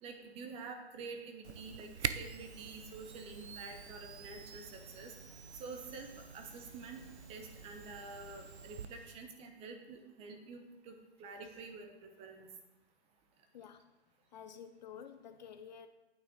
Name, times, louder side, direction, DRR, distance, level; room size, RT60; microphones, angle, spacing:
voice 1, 0.0-5.1 5.6-12.5, right 4 dB, 20° right, 4 dB, 0.9 m, -48 dB
Camera, 1.4-8.9, right 7 dB, 85° right, 0.7 m, -45 dB
sound 1, 2.4-9.1, left 1 dB, 5° left, 1.5 m, -60 dB
voice 2, 13.5-13.9 14.3-15.9, left 7 dB, 40° left, 9 dB, 0.6 m, -51 dB
9.5 x 9.0 x 3.9 m, 1.1 s
hypercardioid pair, 135°, 33 cm